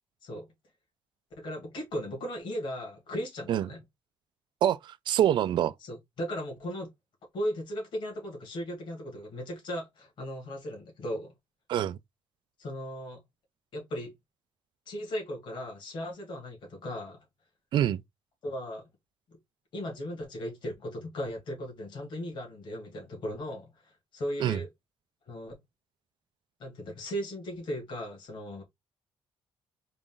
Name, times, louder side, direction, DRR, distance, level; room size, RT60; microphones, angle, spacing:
voice 1, 1.4-3.8 5.8-6.9 7.3-11.3 12.6-13.2 13.7-14.1 14.9-17.2 18.4-18.8 19.7-24.7 25.3-25.6 26.6-28.6, equal, 60° left, 2.1 m, -37 dB
voice 2, 4.6-5.7 11.7-12.0 17.7-18.0 24.4-24.6, right 11 dB, 55° right, 0.3 m, -25 dB
4.0 x 2.4 x 3.8 m
cardioid pair, 160°, 9 cm